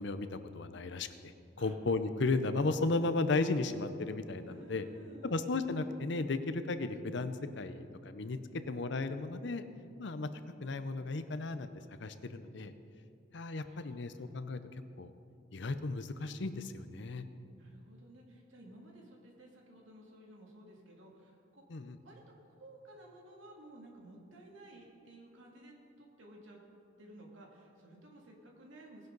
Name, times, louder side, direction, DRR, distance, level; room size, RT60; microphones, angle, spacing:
voice 1, 0.0-1.3 1.6-4.9 5.2-8.4 8.7-9.7 10.0-10.3 10.6-11.7 12.0-12.7 13.3-14.6 15.0-15.1 15.5-17.2 21.7-22.0, left 3 dB, 60° left, 11 dB, 0.6 m, -34 dB
voice 2, 4.4-5.4 8.5-8.7 13.6-14.3 17.6-21.6 22.0-26.6 27.0-29.1, right 1 dB, 75° right, -1 dB, 2.5 m, -55 dB
19.0 x 10.5 x 4.0 m, 2.5 s
head